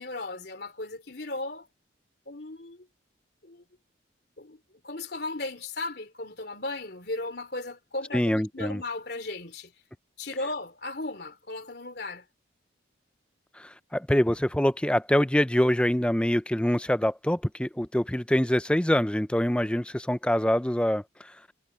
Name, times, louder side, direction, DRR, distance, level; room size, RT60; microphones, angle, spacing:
voice 1, 0.0-1.7 2.3-2.9 3.4-3.6 4.4-4.6 4.8-9.7 10.2-12.3, left 2 dB, 55° left, 3.6 m, -36 dB
voice 2, 8.1-8.8 13.6-21.3, equal, 5° left, 0.5 m, -25 dB
head